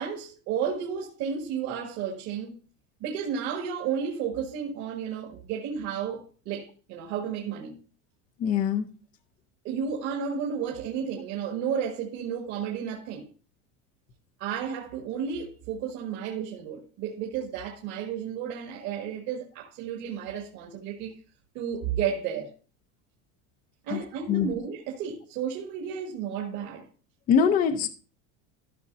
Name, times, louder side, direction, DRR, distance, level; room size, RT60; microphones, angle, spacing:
voice 1, 0.0-2.5 3.0-7.8 9.6-13.3 14.4-21.1 21.5-22.5 23.8-26.9, right 7 dB, 50° right, 1.9 m, -32 dB
voice 2, 8.4-8.9 23.9-24.0 24.3-24.5 27.3-27.9, left 7 dB, 20° left, 0.6 m, -23 dB
14.5 x 6.5 x 2.6 m
cardioid pair, 175°, 38 cm